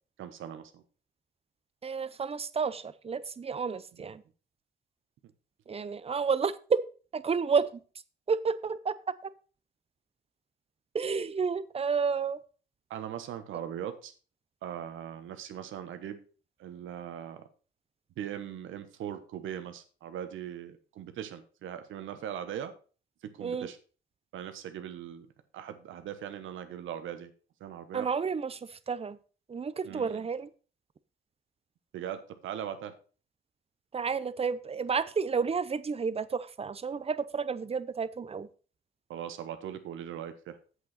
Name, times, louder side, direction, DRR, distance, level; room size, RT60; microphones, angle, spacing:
voice 1, 0.2-0.8 5.2-5.3 12.9-14.1 14.6-16.2 16.6-17.4 18.2-22.7 23.2-23.8 24.3-25.3 25.5-27.3 27.6-28.1 29.8-30.2 31.9-32.9 39.1-40.6, right 10 dB, 80° right, 9 dB, 1.2 m, -40 dB
voice 2, 1.8-4.2 5.7-6.8 7.1-7.8 8.3-8.9 9.2-9.3 10.9-12.4 23.4-23.7 27.9-29.2 29.5-30.5 33.9-38.5, right 5 dB, 30° right, 16 dB, 0.6 m, -31 dB
8.1 x 8.0 x 4.2 m, 0.38 s
cardioid pair, 90°, 20 cm